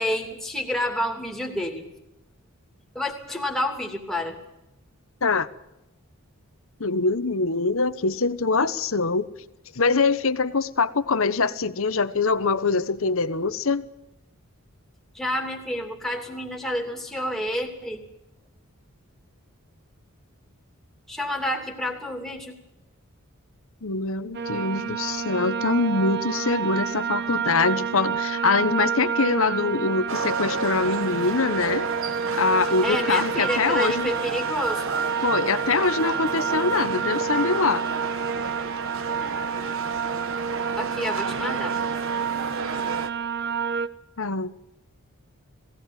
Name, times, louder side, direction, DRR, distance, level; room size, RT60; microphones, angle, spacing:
voice 1, 0.0-1.9 2.9-4.4 15.1-18.0 21.1-22.5 32.8-34.9 40.8-41.7, left 1 dB, ahead, 1 dB, 2.8 m, -29 dB
voice 2, 6.8-9.3 9.8-13.8 23.8-31.9 32.3-34.1 35.2-37.8 44.2-44.5, left 4 dB, 65° left, 13 dB, 1.0 m, -24 dB
sound 1, 24.3-43.9, right 6 dB, 50° right, 0.9 m, -29 dB
sound 2, 30.1-43.1, right 3 dB, 65° right, 1.3 m, -32 dB
20.5 x 16.5 x 9.1 m, 0.92 s
head